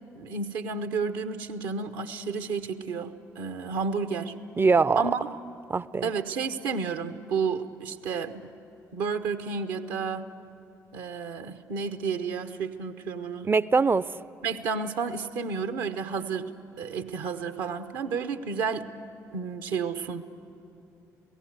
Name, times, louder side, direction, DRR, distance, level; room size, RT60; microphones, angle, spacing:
voice 1, 0.1-4.3 5.0-5.2 6.0-8.5 8.9-10.3 10.9-13.5 14.4-16.5 16.8-18.9 19.3-20.2, right 5 dB, 65° right, 10 dB, 0.9 m, -31 dB
voice 2, 4.6-5.1 5.7-6.1 13.4-14.1, right 4 dB, 25° right, 19 dB, 0.5 m, -22 dB
27.5 x 17.0 x 8.1 m, 3.0 s
figure-of-eight pair, 45°, 8 cm